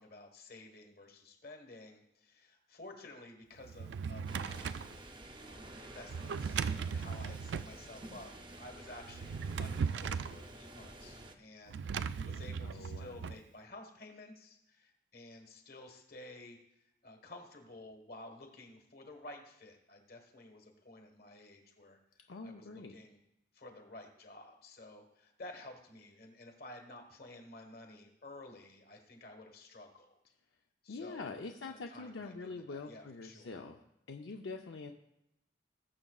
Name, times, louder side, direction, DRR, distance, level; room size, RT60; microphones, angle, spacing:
voice 1, 0.0-4.8 5.4-8.3 8.6-16.6 17.0-23.2 23.5-30.2 30.8-33.6, left 2 dB, 50° left, 4 dB, 1.4 m, -52 dB
Drawer open or close, 3.6-4.9 6.1-7.7 9.1-10.4 11.7-13.4, right 6 dB, 70° right, 0.3 m, -37 dB
sound 1, 4.3-11.4, right 1 dB, 25° right, 0.6 m, -51 dB
voice 2, 12.6-13.2 22.3-22.9 30.9-33.8 34.1-34.9, left 3 dB, 80° left, 3 dB, 0.6 m, -44 dB
19.5 x 7.1 x 2.4 m, 0.83 s
head